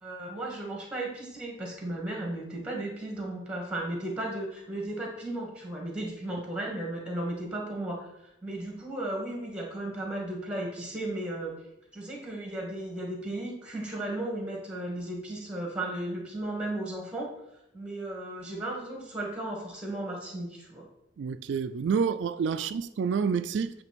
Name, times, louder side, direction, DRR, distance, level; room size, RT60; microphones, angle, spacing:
voice 1, 0.0-11.5 11.9-17.3 17.7-20.9, right 1 dB, 5° right, 2.0 m, -35 dB
voice 2, 21.2-23.8, right 6 dB, 85° right, 0.3 m, -28 dB
8.9 x 3.3 x 6.1 m
head